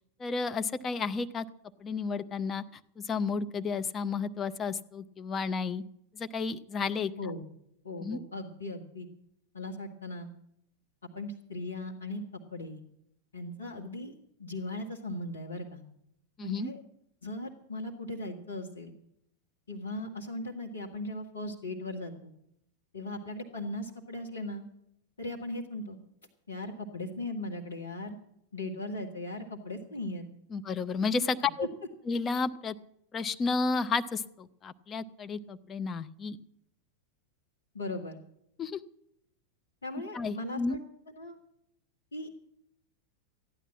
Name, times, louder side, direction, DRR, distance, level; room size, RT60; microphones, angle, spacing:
voice 1, 0.2-1.4 1.8-2.6 3.0-5.8 6.1-7.1 8.0-8.2 16.4-16.7 30.5-31.7 32.1-32.8 33.1-36.4 38.6-38.8 40.1-40.8, left 4 dB, 20° left, 10 dB, 0.7 m, -32 dB
voice 2, 7.8-9.1 9.5-10.3 11.1-12.2 12.5-12.8 13.3-14.1 14.4-15.8 16.4-16.8 17.2-18.9 19.7-22.3 22.9-24.6 25.2-26.0 26.5-28.2 28.5-30.3 37.7-38.2 39.8-40.8 41.2-41.4 42.1-42.3, left 1 dB, 70° left, 1 dB, 1.4 m, -38 dB
14.5 x 10.0 x 7.2 m, 0.75 s
figure-of-eight pair, 90°, 0 cm